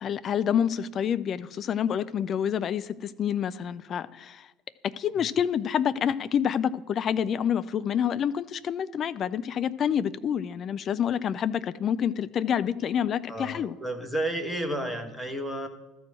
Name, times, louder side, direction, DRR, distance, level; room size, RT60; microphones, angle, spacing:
voice 1, 0.0-4.5 4.8-13.8, left 8 dB, 35° left, 14 dB, 0.4 m, -28 dB
voice 2, 13.3-15.7, right 1 dB, ahead, 4 dB, 1.4 m, -32 dB
13.0 x 4.7 x 7.7 m, 1.1 s
figure-of-eight pair, 70°, 0 cm